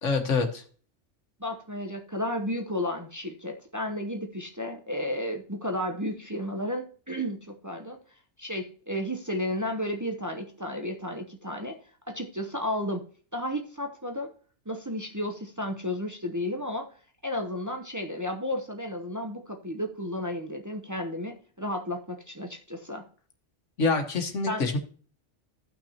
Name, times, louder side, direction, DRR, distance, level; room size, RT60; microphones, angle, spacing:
voice 1, 0.0-0.6 23.8-24.8, left 4 dB, 85° left, 5 dB, 1.7 m, -26 dB
voice 2, 1.4-8.0 8.4-11.8 12.1-13.0 13.3-14.3 14.7-16.9 17.2-23.0 24.5-24.6, left 1 dB, 20° right, 3 dB, 0.7 m, -33 dB
14.5 x 6.0 x 2.9 m, 0.43 s
omnidirectional pair, 1.2 m